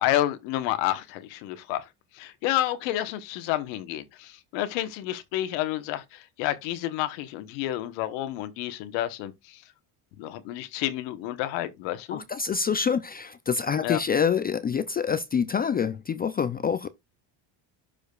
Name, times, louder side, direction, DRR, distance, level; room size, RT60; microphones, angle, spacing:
voice 1, 0.0-1.8 2.1-9.6 10.2-12.2 13.8-14.0, left 14 dB, 90° left, 1.2 m, -30 dB
voice 2, 12.1-16.9, left 6 dB, 25° left, 0.4 m, -26 dB
12.0 x 5.0 x 2.3 m
cardioid pair, 125°, 43 cm